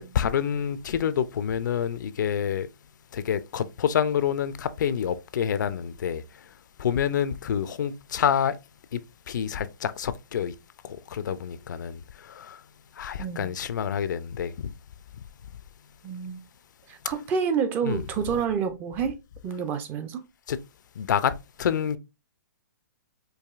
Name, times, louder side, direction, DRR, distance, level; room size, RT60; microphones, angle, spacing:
voice 1, 0.1-2.7 3.1-6.2 6.8-8.5 8.9-9.0 9.3-10.5 10.8-12.0 12.2-12.6 13.0-14.7 17.8-18.0 20.5-20.6 21.0-21.3 21.6-22.0, left 8 dB, 75° left, 0.4 m, -27 dB
voice 2, 13.2-13.5 16.0-16.4 16.9-19.1 19.4-20.2, right 7 dB, 20° right, 0.4 m, -28 dB
4.7 x 2.6 x 2.4 m
hypercardioid pair, 155°, 10 cm